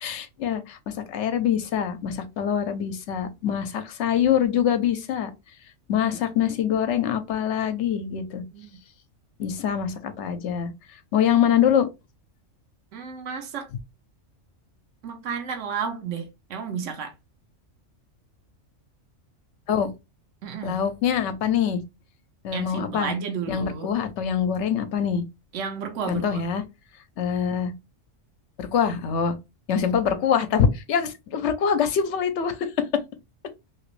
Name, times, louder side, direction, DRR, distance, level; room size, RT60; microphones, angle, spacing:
voice 1, 0.0-5.3 5.9-8.4 9.4-11.9 19.7-19.9 20.6-21.8 22.4-23.2 23.5-25.2 26.1-26.6 27.2-27.7 28.6-29.4 29.7-32.8, left 8 dB, 70° left, 0.9 m, -24 dB
voice 2, 12.9-13.7 15.0-17.1 20.4-20.8 22.5-24.0 25.5-26.4, right 6 dB, 75° right, 1.1 m, -32 dB
2.9 x 2.9 x 3.1 m
omnidirectional pair, 1.3 m